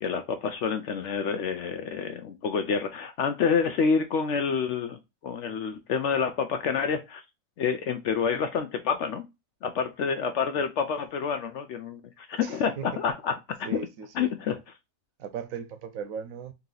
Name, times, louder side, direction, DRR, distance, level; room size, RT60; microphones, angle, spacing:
voice 1, 0.0-7.2 7.6-9.2 9.6-13.7 14.1-14.6, left 6 dB, 65° left, 0.7 m, -28 dB
voice 2, 12.4-12.9 13.6-14.3 15.2-16.5, right 7 dB, 70° right, 1.0 m, -37 dB
3.9 x 2.9 x 3.7 m
omnidirectional pair, 1.5 m